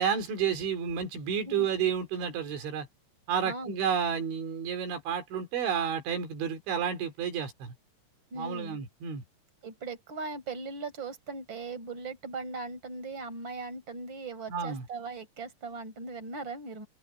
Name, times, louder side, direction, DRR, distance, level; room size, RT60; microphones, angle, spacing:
voice 1, 0.0-2.9 3.3-7.7 8.4-9.2 14.5-14.8, right 7 dB, 80° right, 5.7 m, -31 dB
voice 2, 3.4-3.8 8.3-8.8 9.6-16.9, right 3 dB, 25° right, 6.9 m, -39 dB
open air
omnidirectional pair, 5.3 m